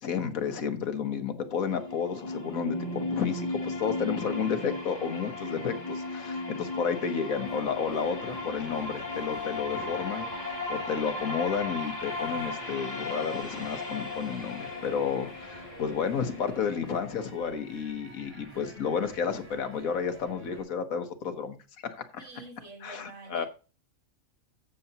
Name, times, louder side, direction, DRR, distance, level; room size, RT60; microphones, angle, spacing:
voice 1, 0.0-21.6 21.9-22.3 22.8-23.4, left 6 dB, 75° left, 1.5 m, -31 dB
sound 1, 1.5-17.5, left 2 dB, 30° left, 1.8 m, -36 dB
sound 2, 7.3-20.6, equal, 20° right, 3.9 m, -48 dB
voice 2, 22.2-23.5, right 3 dB, 55° right, 2.0 m, -46 dB
14.5 x 6.8 x 2.9 m
omnidirectional pair, 1.5 m